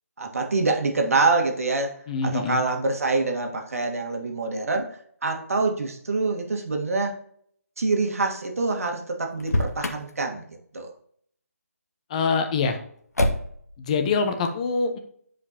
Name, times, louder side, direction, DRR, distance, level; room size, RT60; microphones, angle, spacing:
voice 1, 0.2-2.0 2.2-4.9 5.2-7.1 7.8-10.4 10.7-10.9, right 3 dB, 65° right, 2 dB, 1.6 m, -25 dB
voice 2, 2.1-2.6 12.1-12.8 13.8-15.0, left 4 dB, 25° left, 6 dB, 0.9 m, -24 dB
Motor vehicle (road), 9.4-10.1 13.1-13.7, left 1 dB, 85° left, 1.3 m, -25 dB
9.5 x 5.1 x 2.9 m, 0.62 s
figure-of-eight pair, 155°, 8 cm